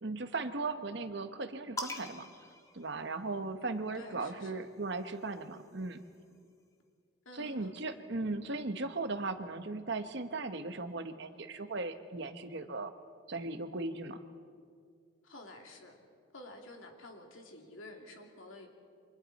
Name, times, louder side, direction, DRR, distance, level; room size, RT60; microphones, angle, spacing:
voice 1, 0.0-2.3 2.7-6.0 7.3-12.9 13.3-14.2, right 3 dB, 60° right, 9 dB, 1.1 m, -37 dB
sound 1, 1.8-3.6 4.7-6.3, left 2 dB, 15° left, 1.2 m, -45 dB
voice 2, 3.9-4.6 7.2-7.7 15.2-16.0 16.3-18.7, left 2 dB, 80° left, 2 dB, 2.8 m, -50 dB
28.5 x 25.5 x 4.2 m, 2.2 s
head